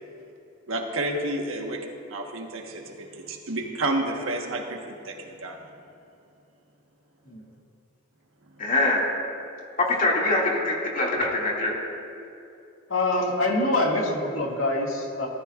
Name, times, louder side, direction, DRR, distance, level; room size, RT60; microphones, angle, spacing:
voice 1, 0.7-1.8 2.1-5.7, right 2 dB, 80° right, 2 dB, 1.4 m, -30 dB
voice 2, 8.6-9.0 10.0-11.7, left 2 dB, 45° left, -3 dB, 2.4 m, -23 dB
voice 3, 12.9-15.3, left 2 dB, 85° left, -2 dB, 2.1 m, -25 dB
18.5 x 13.5 x 2.5 m, 2.6 s
head